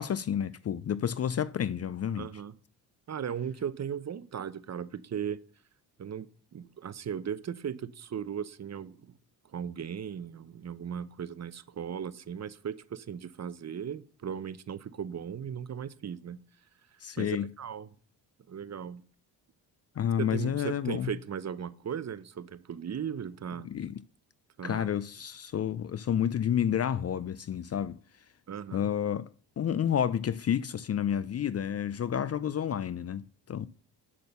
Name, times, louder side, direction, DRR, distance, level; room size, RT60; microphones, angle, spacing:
voice 1, 0.0-2.3 17.0-17.5 20.0-21.1 23.6-24.0 24.6-28.0 28.7-29.3 29.6-33.7, left 9 dB, 35° left, 0.5 m, -30 dB
voice 2, 2.1-2.5 3.1-5.4 6.0-9.1 9.5-16.4 17.2-17.9 18.5-19.0 20.2-23.7 24.6-24.9 28.5-28.9, right 8 dB, 35° right, 0.8 m, -37 dB
8.7 x 6.2 x 6.9 m
supercardioid pair, 65°, 44 cm